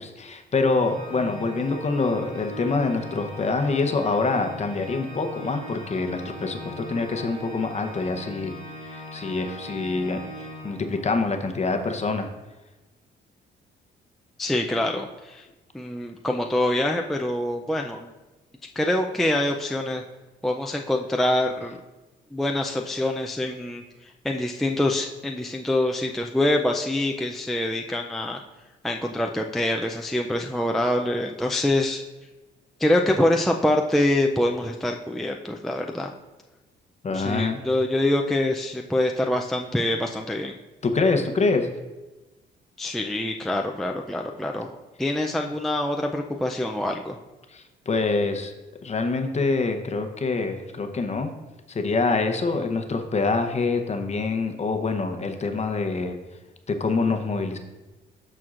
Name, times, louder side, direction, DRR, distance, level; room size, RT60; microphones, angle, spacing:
voice 1, 0.0-8.5 8.8-12.3 37.0-37.6 40.8-41.7 47.5-48.5 48.8-51.3 51.7-56.2 56.7-57.6, left 3 dB, 35° left, 6 dB, 0.8 m, -25 dB
Organ, 0.7-11.3, left 1 dB, 40° right, 2.2 m, -40 dB
voice 2, 14.4-15.4 15.7-18.1 18.8-20.0 20.4-21.8 22.3-23.8 24.2-28.4 28.8-32.0 32.8-36.1 37.1-40.5 42.8-47.2, left 1 dB, ahead, 2 dB, 0.4 m, -25 dB
12.5 x 4.4 x 2.5 m, 1.1 s
cardioid pair, 90°, 20 cm